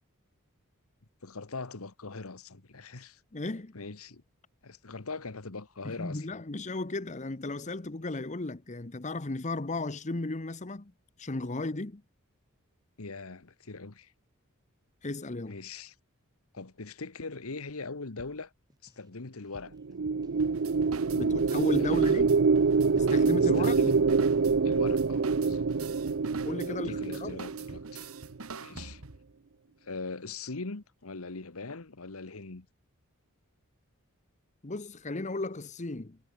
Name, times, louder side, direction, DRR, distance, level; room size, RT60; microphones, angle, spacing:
voice 1, 1.2-3.2 3.7-4.2 4.6-6.4 13.0-14.1 15.5-15.9 16.5-18.5 18.8-19.8 21.8-22.2 23.4-24.0 24.6-25.7 26.7-28.1 28.6-29.0 29.8-32.7, left 3 dB, 75° left, 1.4 m, -41 dB
voice 2, 3.3-3.7 5.8-10.9 11.2-12.0 15.0-15.5 21.1-22.3 23.0-23.8 26.4-27.3 34.6-36.2, left 2 dB, 35° left, 1.0 m, -34 dB
sound 1, 18.2-19.1 19.4-21.3 21.6-21.9 22.2-22.7 23.0-26.8 27.0-27.3 27.6-28.2 28.4-29.0, equal, 20° right, 4.5 m, -57 dB
sound 2, 19.7-28.2, right 4 dB, 60° right, 0.6 m, -26 dB
sound 3, 20.4-29.3, right 4 dB, 75° right, 1.8 m, -46 dB
head